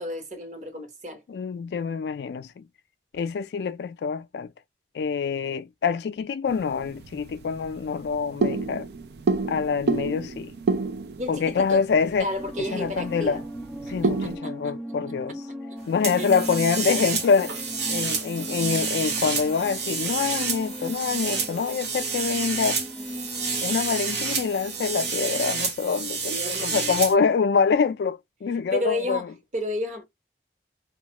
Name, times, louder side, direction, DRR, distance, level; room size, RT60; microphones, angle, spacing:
voice 1, 0.0-1.2 11.2-11.9 12.2-13.4 13.8-14.7 16.1-16.3 26.3-27.1 28.7-30.0, left 1 dB, 45° right, 0.9 m, -32 dB
voice 2, 1.3-2.6 3.1-4.5 4.9-8.9 9.5-10.5 11.3-12.3 12.7-13.4 13.9-15.4 15.9-17.5 17.9-22.8 23.6-29.3, left 5 dB, 70° left, 0.3 m, -25 dB
sound 1, 6.5-14.4, right 3 dB, 70° right, 0.4 m, -30 dB
sound 2, 12.4-25.7, equal, ahead, 0.4 m, -38 dB
sound 3, 16.0-27.1, right 5 dB, 85° right, 1.0 m, -29 dB
2.3 x 2.2 x 2.8 m
head